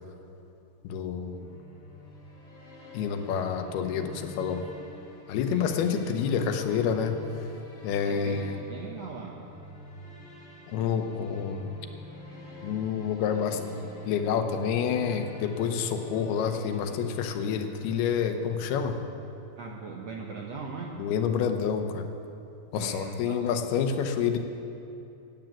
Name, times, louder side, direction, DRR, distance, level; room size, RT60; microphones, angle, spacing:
voice 1, 0.8-1.5 2.9-4.6 5.3-7.2 7.8-8.5 10.7-11.7 12.6-13.8 14.1-19.0 21.0-22.0 22.7-24.4, left 7 dB, 90° left, 7 dB, 2.9 m, -28 dB
sound 1, 1.2-18.9, left 1 dB, 70° left, 0.6 m, -47 dB
voice 2, 5.4-6.0 8.0-9.4 9.8-10.0 19.6-21.0 22.7-23.5, right 5 dB, 70° right, -1 dB, 1.6 m, -40 dB
15.0 x 8.9 x 9.0 m, 2.8 s
omnidirectional pair, 4.4 m